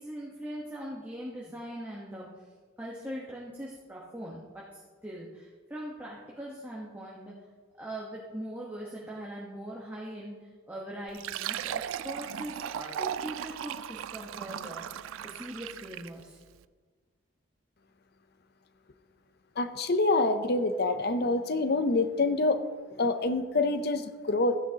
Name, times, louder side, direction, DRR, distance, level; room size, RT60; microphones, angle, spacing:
voice 1, 0.0-2.5 2.8-7.3 7.8-16.4, right 1 dB, 10° right, -5 dB, 1.1 m, -41 dB
Fill (with liquid), 11.1-16.2, right 9 dB, 75° right, 0.3 m, -37 dB
voice 2, 19.6-22.6 23.0-24.6, left 2 dB, 50° left, 11 dB, 0.6 m, -26 dB
14.5 x 10.0 x 2.9 m, 1.5 s
head